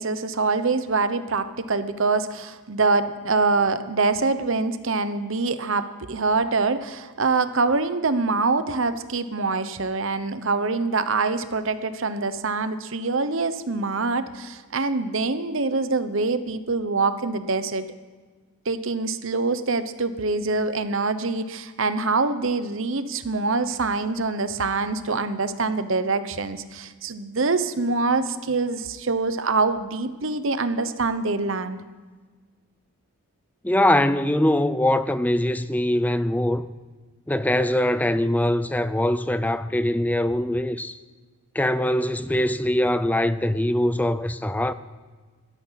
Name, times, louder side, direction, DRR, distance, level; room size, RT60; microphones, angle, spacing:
voice 1, 0.0-17.9 18.6-31.8, right 3 dB, 60° right, 0.9 m, -25 dB
voice 2, 33.6-36.6 37.3-41.0 41.5-44.7, left 1 dB, 5° left, 0.4 m, -22 dB
16.5 x 12.5 x 5.8 m
head